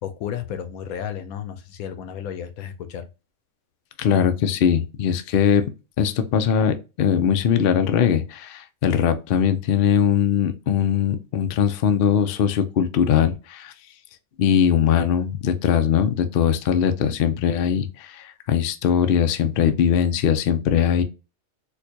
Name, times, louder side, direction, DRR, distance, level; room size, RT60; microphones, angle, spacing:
voice 1, 0.0-3.1, left 9 dB, 90° left, 1.1 m, -33 dB
voice 2, 4.0-5.6 6.0-13.7 14.4-21.0, left 8 dB, 65° left, 0.5 m, -20 dB
4.4 x 2.2 x 2.7 m
omnidirectional pair, 1.4 m